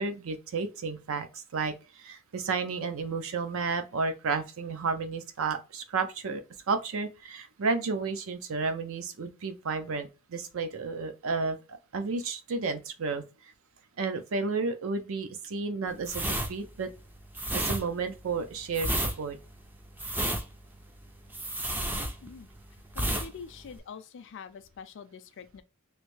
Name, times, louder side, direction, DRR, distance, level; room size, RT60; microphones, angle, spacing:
voice 1, 0.0-13.2 14.0-16.9 17.5-18.9 19.2-19.4, right 4 dB, 65° right, 0.5 m, -32 dB
sound 1, 16.0-22.6 22.9-23.3 23.6-23.8, right 1 dB, 10° right, 0.4 m, -31 dB
voice 2, 22.9-25.6, left 6 dB, 60° left, 0.4 m, -45 dB
3.2 x 2.6 x 3.2 m
head